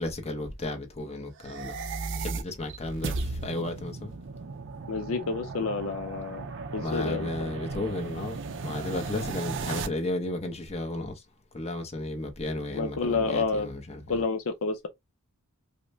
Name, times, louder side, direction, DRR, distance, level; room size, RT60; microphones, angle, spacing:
voice 1, 0.0-1.8 2.2-4.1 6.8-11.3 11.5-14.2, left 2 dB, 30° left, 0.9 m, -33 dB
sound 1, 1.4-9.9, right 4 dB, 55° right, 0.5 m, -36 dB
voice 2, 4.9-6.4 6.7-7.5 12.7-13.7 14.1-14.9, left 4 dB, 65° left, 0.5 m, -29 dB
5.1 x 2.1 x 2.6 m
head